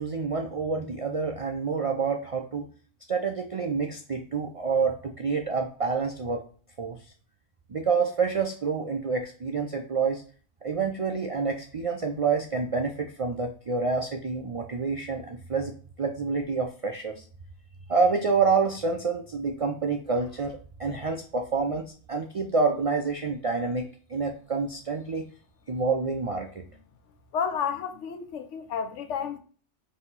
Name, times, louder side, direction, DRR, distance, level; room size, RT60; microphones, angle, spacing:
voice 1, 0.0-2.7 3.1-6.4 6.8-7.0 7.7-10.2 10.6-17.2 17.9-25.2 25.7-26.7, right 4 dB, 65° right, 0.3 m, -28 dB
voice 2, 27.3-29.4, left 7 dB, 85° left, 1.0 m, -31 dB
4.2 x 2.9 x 3.9 m
omnidirectional pair, 1.2 m